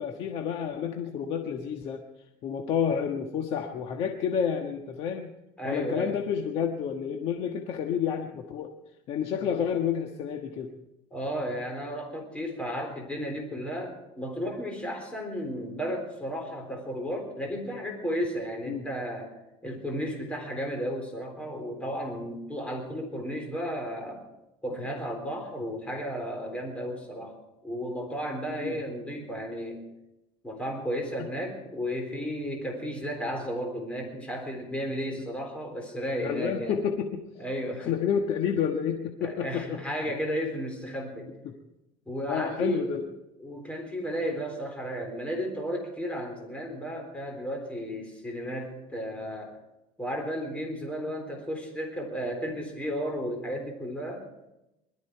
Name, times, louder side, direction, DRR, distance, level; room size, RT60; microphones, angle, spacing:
voice 1, 0.0-2.0 2.4-5.3 5.6-8.7 9.1-10.7 18.6-18.8 28.6-28.8 36.2-37.2 37.8-40.1 41.4-41.5 42.3-43.0, left 7 dB, 55° left, 3 dB, 1.3 m, -30 dB
voice 2, 5.6-6.2 9.4-9.5 11.1-19.3 19.6-24.2 24.6-27.3 27.6-29.8 30.4-36.8 37.4-37.9 39.2-41.3 42.1-42.9 43.4-49.6 50.0-54.2, equal, 10° left, 2 dB, 3.7 m, -33 dB
21.0 x 13.0 x 4.6 m, 0.91 s
cardioid pair, 135°, 12 cm